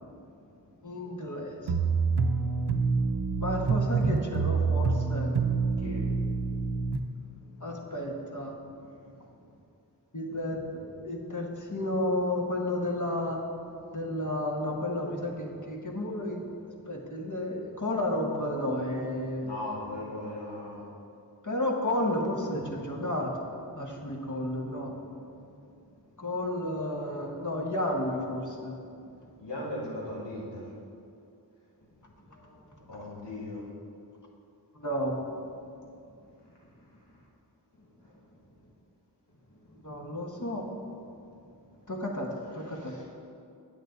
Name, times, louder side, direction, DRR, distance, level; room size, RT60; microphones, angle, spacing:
voice 1, 0.8-1.7 3.4-5.3 7.6-8.6 10.1-13.4 13.9-16.4 16.7-19.5 21.4-23.4 23.8-24.9 26.2-28.8 32.3-32.6 34.7-35.1 39.8-40.7 41.9-42.9, left 1 dB, 50° left, 0 dB, 1.3 m, -32 dB
sound 1, 1.7-7.0, right 4 dB, 80° right, 0.6 m, -27 dB
voice 2, 19.4-20.8 29.4-30.6 32.9-33.6 42.6-43.0, left 1 dB, 90° left, -5 dB, 1.9 m, -38 dB
9.2 x 8.1 x 4.0 m, 2.6 s
wide cardioid pair, 45°, 40 cm